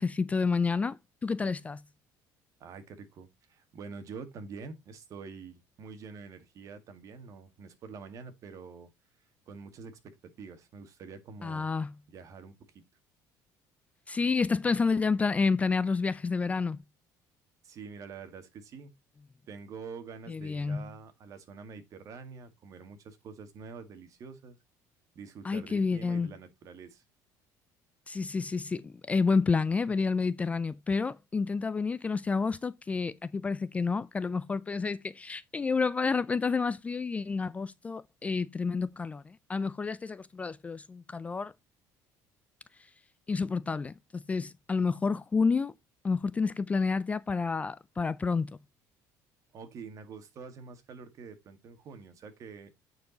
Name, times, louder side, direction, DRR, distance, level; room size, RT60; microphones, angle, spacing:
voice 1, 0.0-1.8 11.4-11.9 14.1-16.8 20.3-20.8 25.4-26.3 28.1-41.5 43.3-45.7 46.0-48.6, left 4 dB, 20° left, 0.3 m, -29 dB
voice 2, 2.6-8.9 9.5-11.7 12.1-12.5 17.6-18.9 19.5-24.6 25.2-27.0 49.5-52.8, right 5 dB, 50° right, 2.0 m, -46 dB
9.1 x 4.7 x 4.1 m
cardioid pair, 130°, 7 cm